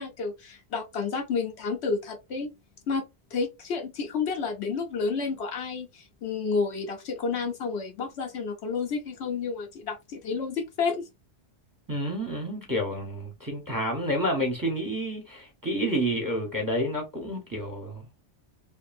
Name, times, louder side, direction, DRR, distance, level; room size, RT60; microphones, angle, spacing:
voice 1, 0.0-2.5 2.9-3.1 3.3-11.1, left 5 dB, 65° left, 1.0 m, -30 dB
voice 2, 11.9-18.1, equal, 20° right, 1.0 m, -29 dB
2.9 x 2.6 x 2.4 m
omnidirectional pair, 1.2 m